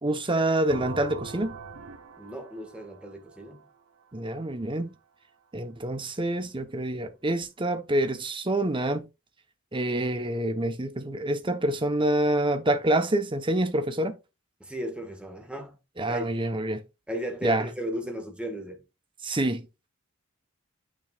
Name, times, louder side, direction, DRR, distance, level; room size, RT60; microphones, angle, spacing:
voice 1, 0.0-1.6 4.1-4.9 5.5-9.1 9.7-14.2 16.0-16.8 17.4-17.7 19.2-19.7, right 1 dB, 25° right, 0.9 m, -27 dB
sound 1, 0.7-4.4, right 4 dB, 80° right, 0.9 m, -42 dB
voice 2, 2.2-3.6 14.6-15.8 16.1-16.6 17.1-18.8, right 1 dB, 5° right, 1.6 m, -36 dB
8.6 x 6.1 x 2.4 m
head